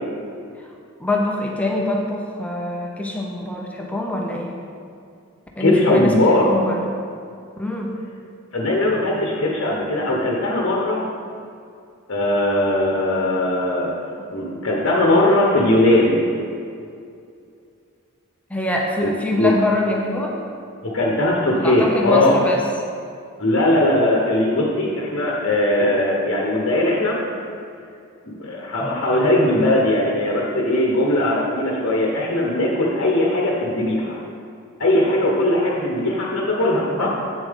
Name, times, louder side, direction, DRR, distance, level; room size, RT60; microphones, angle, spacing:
voice 1, 1.0-4.5 5.6-6.9 7.6-8.0 18.5-20.4 21.6-22.7 23.4-23.5 28.8-29.0 37.0-37.1, left 1 dB, 5° left, -1 dB, 0.6 m, -24 dB
voice 2, 5.6-6.4 8.5-11.0 12.1-13.9 14.3-16.2 19.0-19.1 19.4-19.5 20.9-22.4 23.4-27.2 28.2-34.1 34.8-37.1, left 1 dB, 50° left, -3 dB, 1.1 m, -19 dB
8.3 x 7.2 x 3.6 m, 2.4 s
head